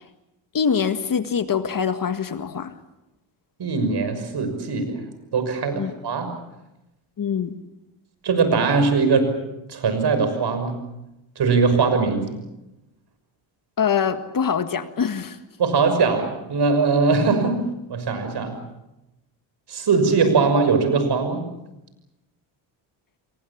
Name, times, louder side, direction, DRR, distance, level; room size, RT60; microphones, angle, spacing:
voice 1, 0.5-2.7 5.7-5.9 7.2-7.5 13.8-15.4, left 7 dB, 40° left, 10 dB, 1.8 m, -24 dB
voice 2, 3.6-5.0 5.3-6.3 8.2-9.3 9.7-10.8 11.4-12.4 15.6-17.6 17.9-18.6 19.7-21.4, right 4 dB, 50° right, 8 dB, 6.3 m, -21 dB
27.0 x 23.5 x 7.3 m, 0.94 s
supercardioid pair, 75°, 50 cm